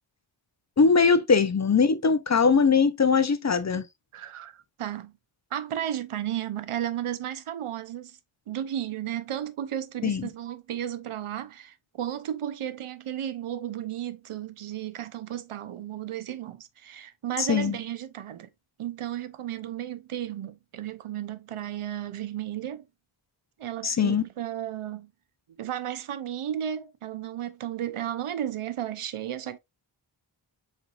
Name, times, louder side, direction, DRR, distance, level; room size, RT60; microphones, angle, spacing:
voice 1, 0.8-3.9 10.0-10.3 17.4-17.7 23.8-24.2, left 5 dB, 35° left, 0.5 m, -21 dB
voice 2, 4.1-5.1 5.5-8.2 8.5-18.5 18.8-22.8 23.6-25.1 25.5-29.6, right 11 dB, 80° right, 0.7 m, -34 dB
4.5 x 4.0 x 2.3 m
wide cardioid pair, 95°, 49 cm